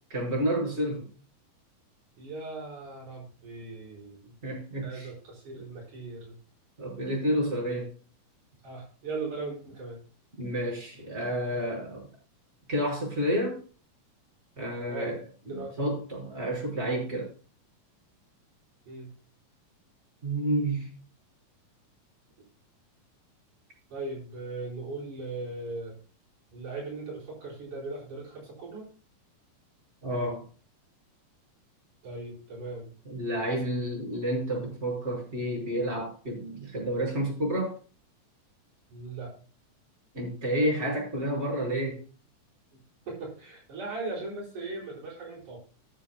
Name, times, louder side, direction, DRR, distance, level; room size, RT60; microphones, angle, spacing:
voice 1, 0.1-1.1 4.4-5.1 6.8-7.9 10.4-12.1 12.7-13.6 14.6-15.2 15.5-17.3 20.2-20.9 30.0-30.4 33.1-37.7 40.1-42.0, right 1 dB, 15° right, -2 dB, 5.9 m, -30 dB
voice 2, 2.2-4.3 4.8-6.4 8.6-10.0 14.9-15.2 15.5-15.8 18.9-19.1 23.9-26.0 26.5-28.9 32.0-32.9 33.4-33.6 38.9-39.3 43.1-45.6, right 3 dB, 60° right, -2 dB, 6.2 m, -38 dB
21.0 x 7.4 x 2.3 m, 0.38 s
omnidirectional pair, 3.9 m